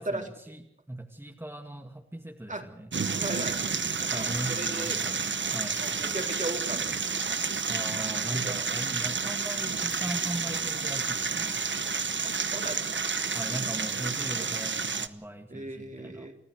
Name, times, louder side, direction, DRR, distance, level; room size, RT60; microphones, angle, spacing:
voice 1, 0.0-3.0 4.1-5.2 5.5-5.8 7.7-11.6 13.3-16.3, right 1 dB, 10° right, 2 dB, 2.3 m, -39 dB
sound 1, 2.9-15.1, right 5 dB, 60° right, 1.0 m, -30 dB
voice 2, 3.2-3.6 4.0-5.0 5.8-6.9 7.2-7.6 8.3-8.7 12.2-13.1 13.8-13.9 15.5-16.4, right 2 dB, 35° right, 3 dB, 3.5 m, -37 dB
29.5 x 13.5 x 6.7 m, 0.74 s
cardioid pair, 50°, 21 cm